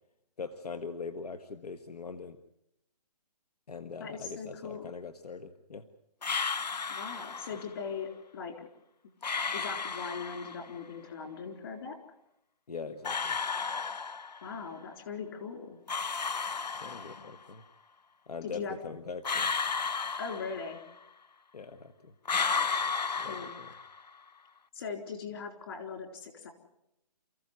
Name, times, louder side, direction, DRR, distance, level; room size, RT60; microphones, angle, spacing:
voice 1, 0.4-2.4 3.7-5.9 12.7-13.4 16.8-17.6 18.3-19.5 21.5-22.1 23.2-23.7, left 5 dB, 70° left, 10 dB, 1.5 m, -42 dB
voice 2, 4.0-4.8 6.9-8.7 9.5-12.0 14.4-15.8 18.4-18.8 20.2-20.8 23.1-23.6 24.7-26.5, left 5 dB, 35° left, 5 dB, 3.9 m, -40 dB
sound 1, 6.2-7.7 9.2-10.7 13.0-14.6 15.9-17.4 19.2-21.0 22.2-24.1, left 5 dB, 85° left, 0.9 m, -33 dB
29.0 x 14.5 x 9.6 m, 0.84 s
hypercardioid pair, 165°, 21 cm